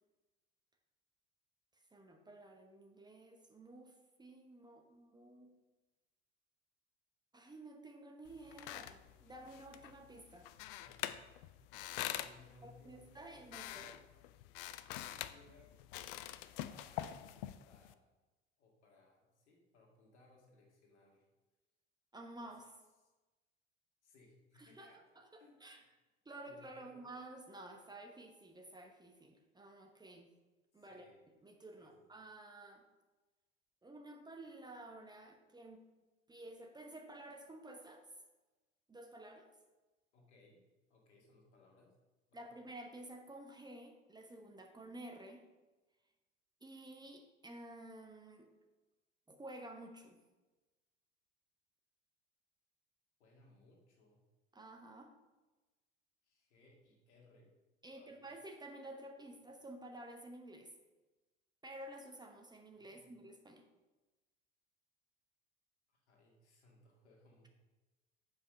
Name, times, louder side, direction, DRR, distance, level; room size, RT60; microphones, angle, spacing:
voice 1, 1.9-5.5 7.3-10.5 12.6-13.9 22.1-22.7 24.6-24.9 25.2-25.8 26.2-30.3 30.7-31.0 31.4-32.8 33.8-35.8 36.3-38.0 38.9-39.5 42.3-45.4 46.6-48.5 49.3-50.2 54.5-55.1 57.8-60.7 61.6-63.6, right 1 dB, 10° right, 3 dB, 0.9 m, -52 dB
sound 1, 8.2-17.9, left 13 dB, 55° left, 0.5 m, -46 dB
voice 2, 10.8-11.1 11.5-11.7 12.1-14.0 15.1-15.7 16.4-18.0 18.6-21.3 22.4-22.6 23.0-23.1 24.0-25.6 26.4-27.1 30.7-31.2 31.8-32.1 40.1-40.6 40.9-42.0 42.3-42.5 53.2-54.2 56.2-57.5 57.9-58.3 62.8-63.1 65.9-67.5, left 2 dB, 75° left, 0 dB, 1.9 m, -65 dB
7.3 x 5.2 x 5.3 m, 1.2 s
figure-of-eight pair, 70°, 35 cm